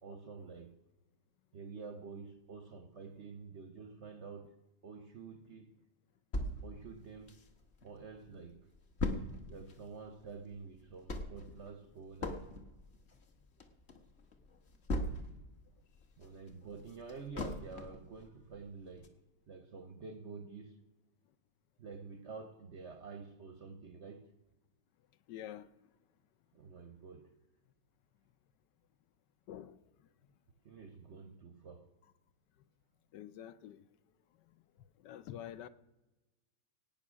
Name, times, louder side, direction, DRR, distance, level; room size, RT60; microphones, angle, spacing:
voice 1, 0.0-0.7 1.5-4.6 4.8-5.7 6.6-7.4 7.8-8.7 9.5-12.5 16.2-19.1 19.5-20.8 21.8-24.3 26.5-27.3 30.6-31.9, right 4 dB, 55° right, 0.8 m, -49 dB
sound 1, 6.3-7.9 8.3-8.4 8.5-15.5 15.9-18.1 18.5-18.6 19.0-19.1, left 1 dB, 40° left, 1.3 m, -40 dB
voice 2, 25.3-25.7 29.5-29.8 33.1-33.8 35.0-35.7, left 11 dB, 75° left, 1.2 m, -46 dB
17.0 x 9.1 x 6.2 m
omnidirectional pair, 2.0 m